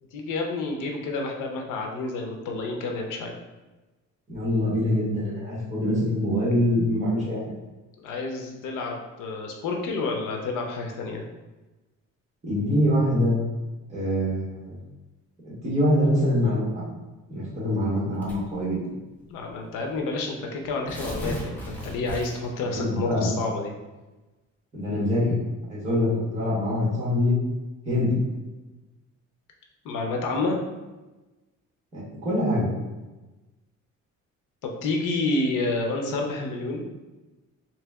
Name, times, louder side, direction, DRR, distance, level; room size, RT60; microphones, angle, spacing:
voice 1, 0.1-3.3 8.0-11.2 19.3-23.7 29.8-30.6 34.6-36.8, left 3 dB, 80° left, 1 dB, 0.7 m, -29 dB
voice 2, 4.3-7.5 12.4-13.4 13.9-14.8 15.4-16.9 17.3-18.8 22.6-23.3 24.7-25.3 25.7-27.4 27.8-28.1 31.9-32.7, left 1 dB, 25° right, -7 dB, 1.3 m, -24 dB
Tearing, 18.2-18.6 19.5-19.6 19.9-20.0 20.6-22.6, equal, 5° left, 0.5 m, -35 dB
3.2 x 3.0 x 3.5 m, 1.1 s
cardioid pair, 175°, 31 cm